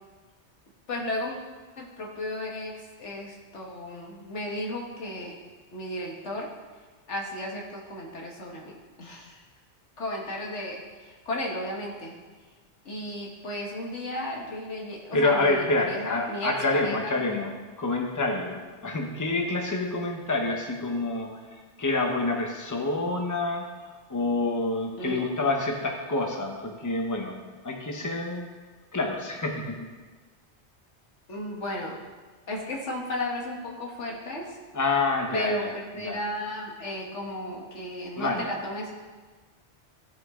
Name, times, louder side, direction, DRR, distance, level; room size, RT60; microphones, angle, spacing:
voice 1, 0.9-1.4 1.8-5.4 5.7-6.5 7.1-8.7 9.0-9.4 10.0-12.1 12.9-17.2 25.0-25.3 31.3-32.0 32.5-34.6 35.3-38.9, left 1 dB, 85° left, -1 dB, 1.9 m, -34 dB
voice 2, 15.1-17.5 17.8-21.4 21.8-23.6 24.1-27.4 27.6-28.5 28.9-29.8 34.7-35.7 36.0-36.2 38.2-38.4, left 2 dB, 15° left, 1 dB, 1.0 m, -27 dB
15.0 x 6.4 x 3.7 m, 1.4 s
omnidirectional pair, 1.2 m